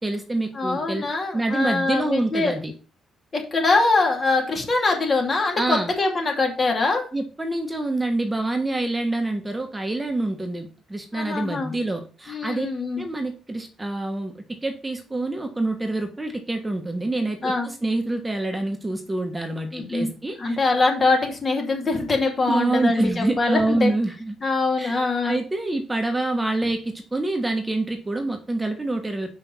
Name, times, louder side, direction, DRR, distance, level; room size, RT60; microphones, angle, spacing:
voice 1, 0.0-1.1 1.3-2.7 5.6-5.9 7.1-12.7 13.0-20.6 22.4-24.3 24.8-29.3, right 2 dB, 15° right, 5 dB, 1.4 m, -26 dB
voice 2, 0.5-2.5 3.3-7.0 11.1-11.7 12.3-13.0 17.4-17.7 19.7-20.1 20.4-23.9 24.4-25.4, left 3 dB, 35° left, 2 dB, 2.6 m, -23 dB
5.7 x 5.6 x 5.7 m, 0.36 s
cardioid pair, 90°, 0 cm